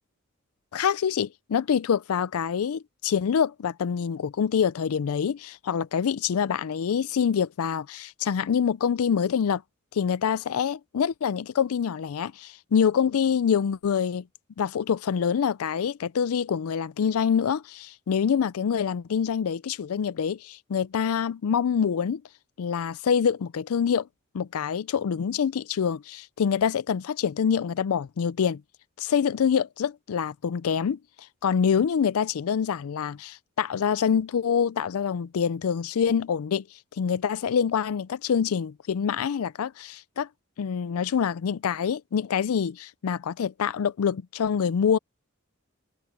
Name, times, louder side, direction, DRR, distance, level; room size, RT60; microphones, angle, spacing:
voice 1, 0.7-9.6 9.9-14.2 14.6-22.2 22.6-24.1 24.3-28.6 29.0-31.0 31.4-36.6 37.0-40.3 40.6-45.0, left 7 dB, 90° left, 0.4 m, -26 dB
head